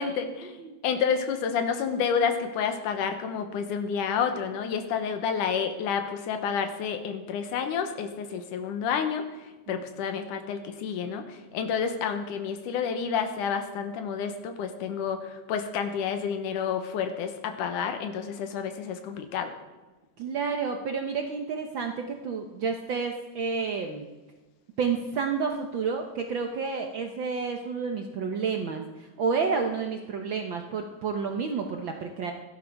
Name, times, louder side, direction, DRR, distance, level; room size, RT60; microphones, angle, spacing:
voice 1, 0.0-0.5 0.8-9.2 9.7-19.5, left 7 dB, 90° left, 7 dB, 2.7 m, -29 dB
voice 2, 20.2-24.0 24.8-32.3, right 5 dB, 80° right, 4 dB, 1.0 m, -30 dB
17.0 x 12.0 x 4.6 m, 1.2 s
omnidirectional pair, 3.6 m